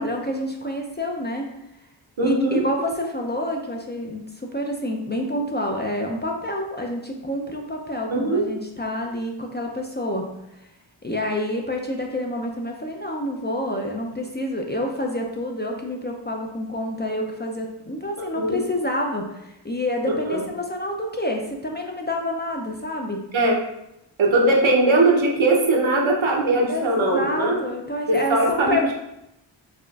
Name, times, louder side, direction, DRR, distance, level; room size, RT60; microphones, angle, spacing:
voice 1, 0.0-1.5 2.2-10.3 11.0-23.2 26.7-28.9, left 1 dB, 25° left, 1 dB, 0.4 m, -28 dB
voice 2, 2.2-2.6 8.1-8.4 18.2-18.6 20.3-20.4 23.3-23.6 24.2-27.6 28.1-28.9, right 2 dB, 75° right, -1 dB, 0.8 m, -20 dB
4.9 x 2.4 x 2.3 m, 0.85 s
wide cardioid pair, 60°, 47 cm